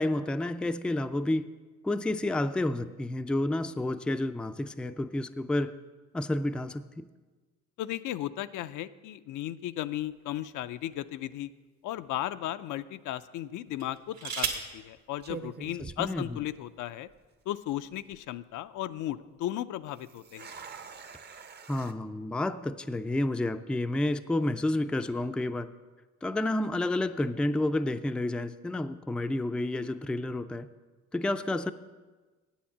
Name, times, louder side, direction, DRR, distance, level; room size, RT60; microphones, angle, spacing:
voice 1, 0.0-1.5 1.8-5.7 6.1-7.1 15.8-16.4 21.7-25.7 26.2-30.7 31.1-31.7, left 1 dB, 5° left, 10 dB, 0.3 m, -30 dB
voice 2, 7.8-11.5 11.8-17.1 17.5-20.5, left 13 dB, 80° left, 12 dB, 0.5 m, -35 dB
sound 1, 10.0-11.2 12.0-12.1 13.7-14.8 15.9-16.0 16.4-16.7, right 6 dB, 70° right, 1.6 m, -36 dB
sound 2, 13.7-14.0 14.7-14.9 15.2-16.8 17.1-17.2 17.8-18.2 19.9-21.9, right 5 dB, 35° right, 0.6 m, -46 dB
8.6 x 7.2 x 7.3 m, 1.3 s
cardioid pair, 90°, 30 cm